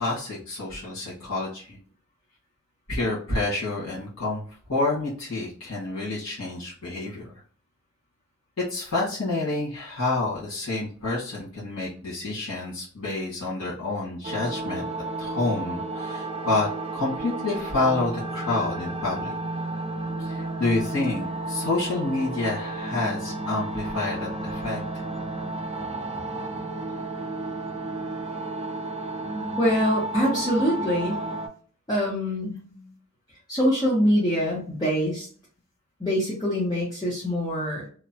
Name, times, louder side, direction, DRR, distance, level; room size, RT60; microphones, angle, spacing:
voice 1, 0.0-1.8 2.9-4.4 4.7-7.3 8.6-14.9 15.2-19.3 20.2-24.8 32.7-32.9, left 2 dB, 75° left, -8 dB, 1.3 m, -28 dB
sound 1, 14.2-31.5, right 2 dB, 30° right, 0.4 m, -32 dB
voice 2, 29.6-31.2 31.9-32.6 33.5-35.3 36.0-37.8, equal, 20° left, -7 dB, 0.7 m, -24 dB
2.9 x 2.1 x 2.7 m, 0.44 s
head